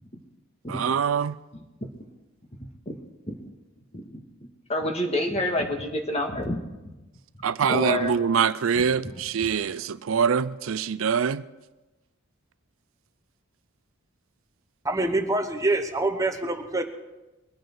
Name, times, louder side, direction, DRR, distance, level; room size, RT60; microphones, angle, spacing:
voice 1, 0.7-1.4 7.4-11.4, right 6 dB, 75° right, 0.5 m, -24 dB
voice 2, 4.7-6.6 7.7-8.2, left 1 dB, 30° left, 1.7 m, -27 dB
voice 3, 14.8-16.8, right 2 dB, 15° right, 1.0 m, -25 dB
22.5 x 9.2 x 4.6 m
head